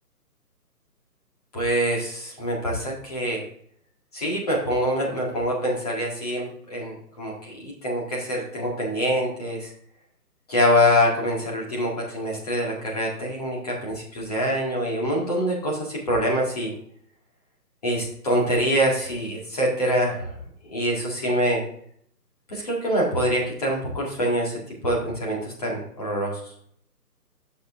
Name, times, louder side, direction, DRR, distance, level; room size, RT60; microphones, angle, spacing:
voice 1, 1.5-3.4 4.1-9.7 10.5-16.7 17.8-20.4 20.7-21.6 22.5-26.4, equal, 25° left, -3 dB, 1.8 m, -25 dB
7.6 x 6.6 x 3.4 m, 0.64 s
hypercardioid pair, 175°, 48 cm